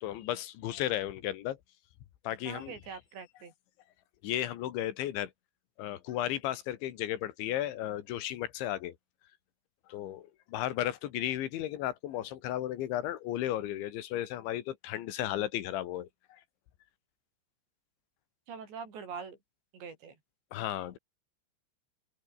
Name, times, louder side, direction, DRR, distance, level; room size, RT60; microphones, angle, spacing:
voice 1, 0.0-1.6 2.3-3.0 4.2-5.3 5.8-9.0 9.9-16.1 20.5-21.0, left 13 dB, 85° left, 4.0 m, -34 dB
voice 2, 2.5-3.5 18.5-19.4 19.7-20.1, right 6 dB, 70° right, 7.6 m, -43 dB
open air
omnidirectional pair, 5.3 m